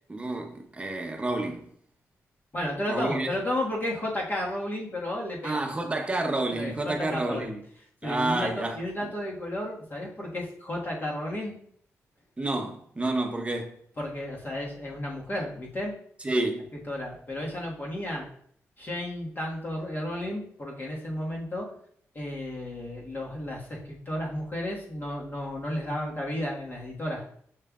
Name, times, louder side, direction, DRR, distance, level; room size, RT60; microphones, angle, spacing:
voice 1, 0.1-1.7 2.9-3.3 5.4-7.6 8.0-8.8 12.4-13.7 16.2-16.7, right 2 dB, 20° right, 0.8 m, -29 dB
voice 2, 2.5-5.6 6.5-7.5 8.0-11.5 14.0-15.9 16.9-18.3 18.8-21.7 22.1-27.2, left 1 dB, 40° left, 1.5 m, -33 dB
6.6 x 3.2 x 2.4 m
cardioid pair, 75°, 5 cm